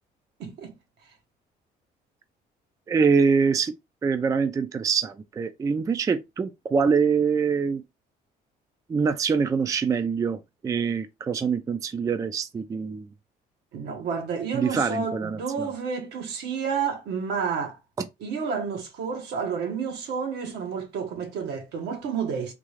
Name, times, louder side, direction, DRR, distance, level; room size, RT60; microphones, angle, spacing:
voice 1, 0.4-0.7 13.7-17.8 18.2-22.5, right 6 dB, 80° right, 1.2 m, -30 dB
voice 2, 2.9-3.7 4.0-7.8 8.9-13.1 14.5-15.7 18.0-18.1, right 5 dB, 20° right, 0.3 m, -24 dB
3.6 x 2.4 x 3.1 m
cardioid pair, 110°, 17 cm